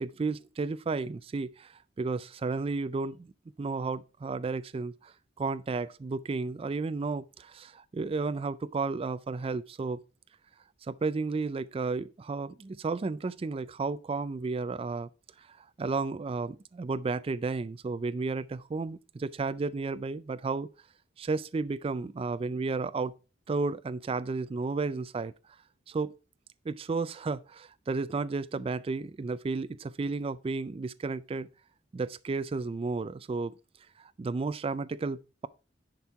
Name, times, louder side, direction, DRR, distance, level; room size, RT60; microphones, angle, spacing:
voice 1, 0.0-3.3 3.6-10.0 10.8-15.1 15.4-20.7 21.2-23.1 23.5-25.3 25.9-26.1 26.7-31.5 31.9-33.5 34.0-35.5, right 4 dB, 30° right, 0.3 m, -33 dB
10.5 x 4.4 x 4.6 m
head